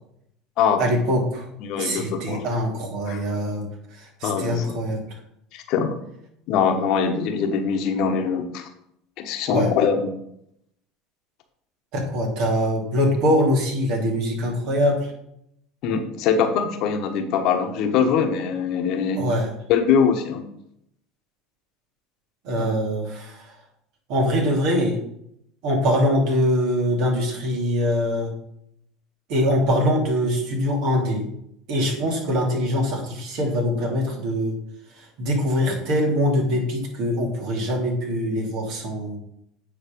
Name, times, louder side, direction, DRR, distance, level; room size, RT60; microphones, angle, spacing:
voice 1, 0.8-1.5 1.8-3.7 4.0-5.0 9.5-9.7 11.9-15.1 19.2-19.5 22.4-23.5 24.1-25.0 25.6-28.3 29.3-31.2 31.7-34.6 35.2-39.2, equal, 65° right, 0 dB, 2.8 m, -23 dB
voice 2, 1.6-2.4 3.1-3.2 4.2-4.8 5.5-6.0 6.5-8.7 9.2-10.1 15.8-19.3 19.7-20.5 22.5-22.7, left 6 dB, 60° left, 6 dB, 1.2 m, -22 dB
9.2 x 4.1 x 5.3 m, 0.74 s
hypercardioid pair, 85°, 0 cm